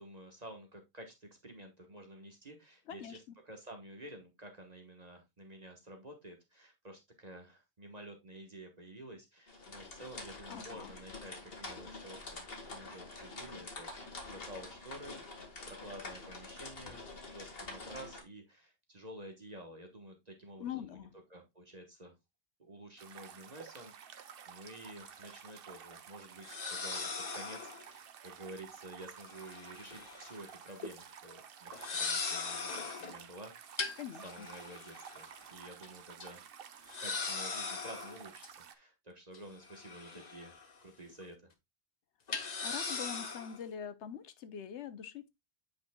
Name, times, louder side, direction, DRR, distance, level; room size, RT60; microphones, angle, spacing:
voice 1, 0.0-15.3 15.7-22.1 22.6-36.4 37.0-41.5, right 1 dB, 35° right, 1.4 m, -51 dB
voice 2, 2.9-3.2 10.5-10.9 20.6-21.1 34.0-34.5 42.6-45.3, left 9 dB, 85° left, 1.1 m, -43 dB
sound 1, 9.5-18.2, left 3 dB, 60° left, 1.8 m, -47 dB
sound 2, 23.0-38.8, right 8 dB, 60° right, 0.9 m, -52 dB
sound 3, 24.8-24.9 26.4-27.9 29.2-30.4 30.7-30.9 31.7-33.2 33.8-35.4 35.8-35.9 36.2-36.3 36.9-38.5 39.3-40.8 41.1-41.2 42.3-43.6, left 4 dB, 40° left, 0.9 m, -40 dB
8.5 x 5.1 x 2.2 m
omnidirectional pair, 1.1 m